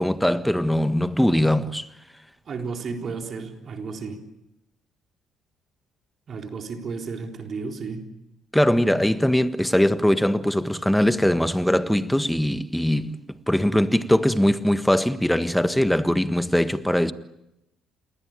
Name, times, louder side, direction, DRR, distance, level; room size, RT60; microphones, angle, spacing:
voice 1, 0.0-1.9 8.5-13.2 13.5-17.1, equal, 5° left, 1.6 m, -21 dB
voice 2, 2.5-4.2 6.3-8.1, right 4 dB, 50° right, 4.0 m, -33 dB
28.5 x 21.0 x 8.9 m
hypercardioid pair, 55°, 0 cm